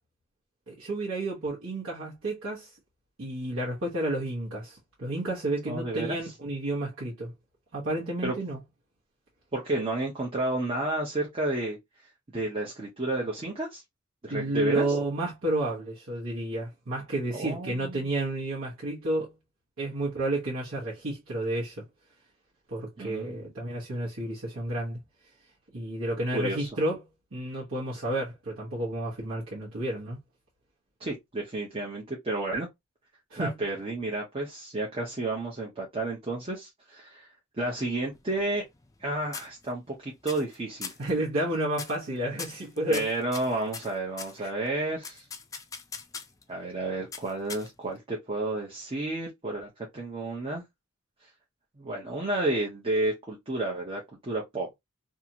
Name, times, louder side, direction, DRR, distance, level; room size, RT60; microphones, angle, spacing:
voice 1, 0.7-2.7 3.2-7.3 7.7-8.6 14.3-19.3 19.8-21.8 22.7-25.0 25.7-27.0 27.3-30.2 33.3-33.6 41.0-43.1 44.4-44.5, right 1 dB, 70° right, 1.0 m, -31 dB
voice 2, 5.7-6.2 8.2-8.3 9.5-11.8 12.3-13.8 14.2-15.0 17.3-18.1 23.0-23.4 26.3-26.7 31.0-32.7 33.4-37.3 37.6-38.6 39.0-40.9 42.9-45.3 46.5-50.6 51.8-54.7, right 2 dB, 30° right, 0.7 m, -31 dB
sound 1, 38.1-39.0 39.3-39.9 40.3-40.6 40.8-41.1 41.7-42.1 42.4-44.4 45.0-46.4 47.1-48.0, left 5 dB, 15° left, 0.4 m, -40 dB
2.8 x 2.4 x 2.7 m
head